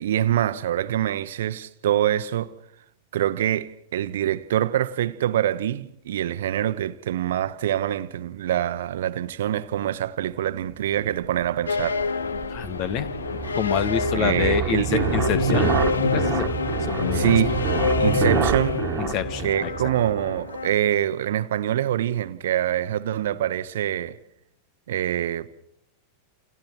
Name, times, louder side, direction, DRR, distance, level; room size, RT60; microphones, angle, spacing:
voice 1, 0.0-2.5 3.1-12.0 14.1-15.1 17.1-17.6 18.0-18.8 19.4-24.2 24.9-25.5, right 11 dB, 60° right, 1.0 m, -25 dB
sound 1, 11.1-20.6, right 9 dB, 35° right, 1.7 m, -28 dB
sound 2, 11.7-20.7, left 5 dB, 75° left, 0.8 m, -27 dB
voice 2, 12.5-13.1 13.5-15.7 16.1-16.6 16.9-17.4 19.0-19.7, left 9 dB, 40° left, 1.6 m, -27 dB
29.0 x 28.5 x 4.7 m
figure-of-eight pair, 90°, 0 cm